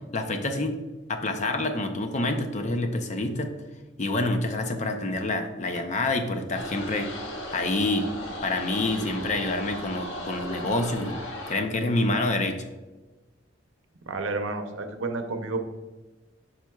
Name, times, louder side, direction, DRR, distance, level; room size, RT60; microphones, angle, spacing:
voice 1, 0.1-0.8 1.1-3.5 4.0-7.1 7.5-8.1 8.4-11.2 11.5-12.6, left 2 dB, 35° left, 6 dB, 0.6 m, -27 dB
sound 1, 6.5-11.6, left 1 dB, 80° left, 1.2 m, -36 dB
voice 2, 14.1-15.6, right 3 dB, 85° right, 6 dB, 0.7 m, -30 dB
7.5 x 5.7 x 2.3 m, 1.2 s
head